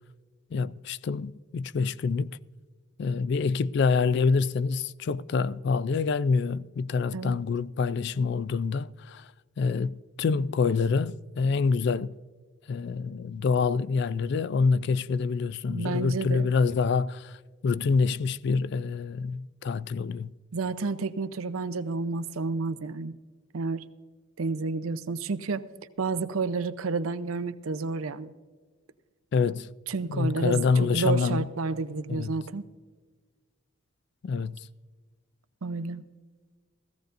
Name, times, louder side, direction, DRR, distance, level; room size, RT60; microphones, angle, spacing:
voice 1, 0.5-2.4 3.0-9.3 9.6-12.1 12.7-17.4 17.6-20.3 29.3-29.7 30.1-31.5 32.1-32.3 34.2-34.6, left 5 dB, 55° left, 0.3 m, -26 dB
voice 2, 15.7-16.5 20.5-23.1 23.5-23.8 24.4-25.6 26.0-28.3 29.9-32.6 35.6-36.0, right 4 dB, 90° right, 0.6 m, -30 dB
17.0 x 14.5 x 2.6 m
head